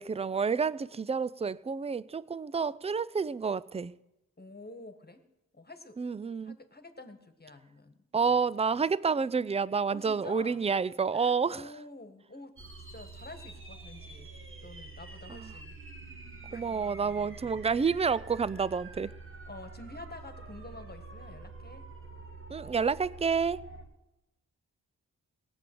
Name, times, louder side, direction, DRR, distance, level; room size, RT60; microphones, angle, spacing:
voice 1, 0.0-3.9 6.0-6.6 8.1-11.6 15.3-15.5 16.5-19.1 22.5-23.6, right 5 dB, 20° right, 0.4 m, -29 dB
voice 2, 4.4-5.2 5.5-6.0 6.4-8.0 8.3-8.4 8.7-8.8 9.9-10.6 11.1-12.5 12.9-14.3 14.6-15.8 16.5-16.6 19.5-21.9, left 2 dB, 25° left, 1.6 m, -48 dB
sound 1, 12.6-23.8, right 3 dB, 35° right, 1.9 m, -47 dB
17.5 x 7.1 x 7.8 m
cardioid pair, 50°, 36 cm